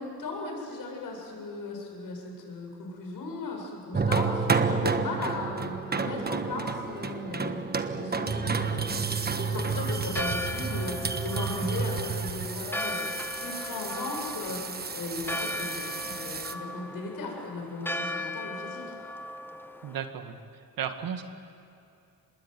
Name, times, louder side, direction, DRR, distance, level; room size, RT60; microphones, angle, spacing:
voice 1, 0.0-14.6 14.9-18.9, left 3 dB, 70° left, 1 dB, 7.6 m, -37 dB
sound 1, 3.9-16.5, right 4 dB, 25° right, 1.4 m, -31 dB
Church bell, 9.8-20.0, left 1 dB, 5° left, 1.3 m, -37 dB
voice 2, 19.8-21.2, right 8 dB, 75° right, 7 dB, 2.1 m, -35 dB
25.5 x 20.5 x 9.3 m, 2.6 s
cardioid pair, 85°, 35 cm